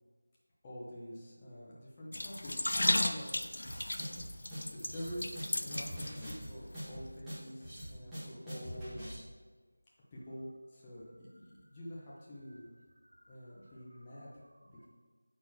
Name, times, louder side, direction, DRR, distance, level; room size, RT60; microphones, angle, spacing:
voice 1, 0.6-3.3 3.8-4.2 4.6-9.1 10.1-12.6 13.3-14.3, equal, 15° left, -7 dB, 1.0 m, -47 dB
sound 1, 2.1-6.3 6.6-6.8, left 1 dB, 60° left, 0.4 m, -34 dB
sound 2, 3.6-9.1, equal, 5° right, 1.4 m, -44 dB
voice 2, 12.5-14.9, right 1 dB, 65° right, 1 dB, 1.0 m, -66 dB
8.0 x 4.2 x 2.9 m, 1.5 s
figure-of-eight pair, 170°, 0 cm